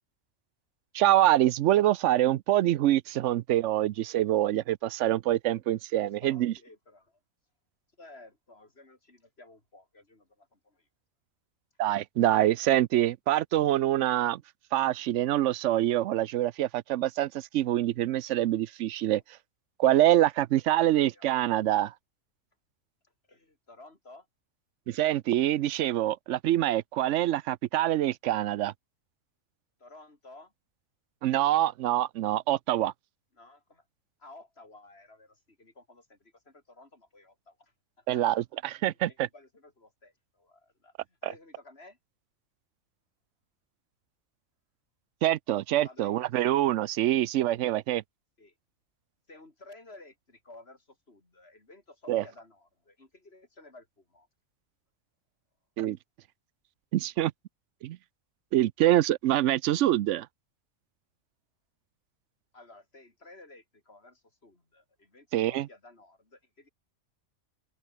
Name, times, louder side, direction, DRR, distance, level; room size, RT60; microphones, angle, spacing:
voice 1, 0.9-6.5 11.8-14.4 14.7-19.2 19.8-21.9 24.9-28.7 31.2-32.9 38.1-39.3 45.2-48.0 52.1-52.2 55.8-56.0 56.9-57.3 57.8-58.0 58.5-60.3 65.3-65.7, right 13 dB, 70° right, 0.8 m, -25 dB
voice 2, 6.2-7.2 8.0-10.9 19.0-19.2 20.8-21.3 23.0-24.3 29.8-30.5 33.3-33.8 34.2-42.0 45.8-46.6 48.4-48.6 49.3-54.3 62.5-66.7, left 2 dB, 45° left, 4.0 m, -54 dB
open air
omnidirectional pair, 1.5 m